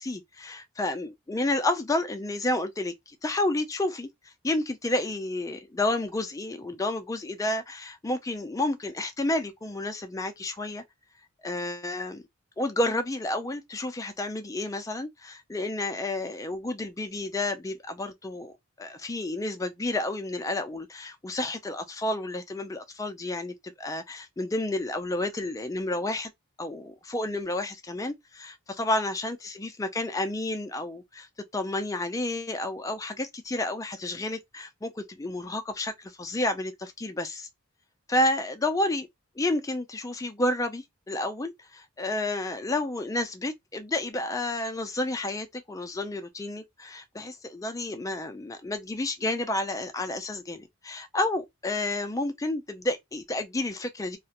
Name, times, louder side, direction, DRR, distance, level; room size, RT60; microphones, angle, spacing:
voice 1, 0.0-4.1 4.4-10.8 11.4-12.2 12.6-26.3 26.6-31.3 31.5-37.5 38.1-39.1 39.4-54.2, left 2 dB, 15° left, 0.3 m, -30 dB
2.4 x 2.1 x 2.8 m
head